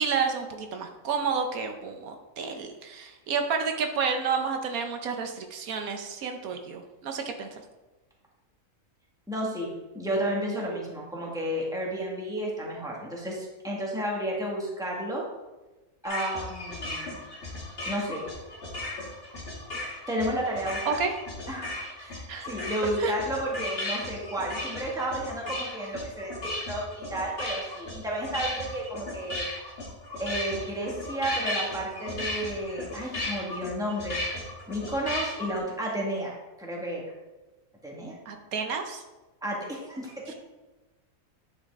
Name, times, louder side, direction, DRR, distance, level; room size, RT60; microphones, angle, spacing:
voice 1, 0.0-7.5 20.9-21.1 22.3-22.5 23.0-23.1 38.3-39.0 40.3-40.4, right 5 dB, 80° right, 5 dB, 1.3 m, -30 dB
voice 2, 9.3-15.2 16.0-17.2 17.8-18.2 20.1-21.0 21.5-29.5 30.2-34.2 34.7-36.3 36.6-37.0 37.8-38.2 39.4-40.3, right 1 dB, 5° right, -3 dB, 1.6 m, -32 dB
sound 1, 16.0-35.6, left 1 dB, 45° left, 1.8 m, -36 dB
10.0 x 5.7 x 3.6 m, 1.1 s
omnidirectional pair, 1.5 m